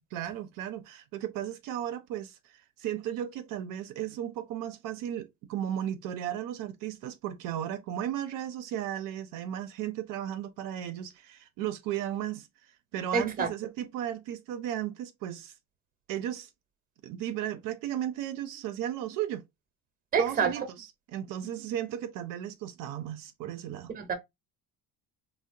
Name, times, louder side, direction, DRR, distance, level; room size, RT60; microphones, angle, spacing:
voice 1, 0.1-15.5 16.1-16.5 17.0-19.4 20.2-23.9, right 11 dB, 65° right, 0.5 m, -35 dB
voice 2, 13.1-13.5 20.1-20.7 23.9-24.1, right 6 dB, 25° right, 0.7 m, -27 dB
3.7 x 2.0 x 2.6 m
cardioid pair, 160°, 34 cm